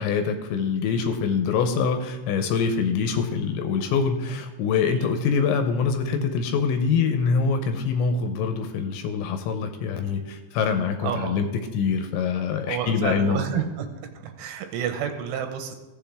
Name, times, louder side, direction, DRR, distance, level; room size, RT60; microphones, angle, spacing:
voice 1, 0.0-11.5 11.7-13.4, left 5 dB, 80° left, 6 dB, 2.8 m, -24 dB
voice 2, 11.0-11.4 12.7-13.9 14.2-15.8, right 9 dB, 80° right, 6 dB, 3.1 m, -30 dB
16.0 x 7.2 x 3.4 m, 1.2 s
omnidirectional pair, 5.6 m